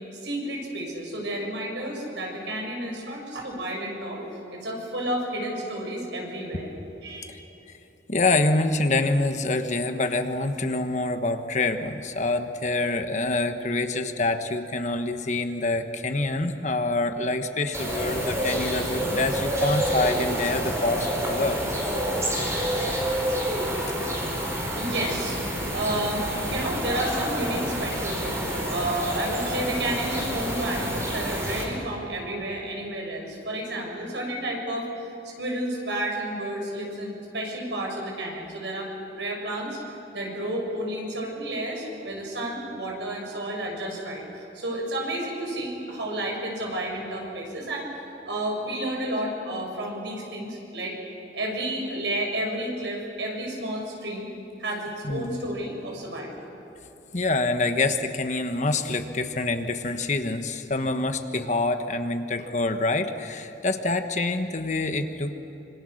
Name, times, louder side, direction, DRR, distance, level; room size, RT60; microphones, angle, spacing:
voice 1, 0.2-4.2 4.5-6.7 7.0-7.4 24.8-38.9 39.1-39.8 40.1-47.9 48.3-51.0 51.3-54.3 54.6-56.4, right 1 dB, 80° right, 0 dB, 6.2 m, -31 dB
voice 2, 8.1-21.6 55.0-55.4 57.1-65.3, left 2 dB, 40° left, 7 dB, 1.3 m, -26 dB
sound 1, 17.7-31.6, equal, 15° right, 4.7 m, -28 dB
26.5 x 25.0 x 6.5 m, 3.0 s
head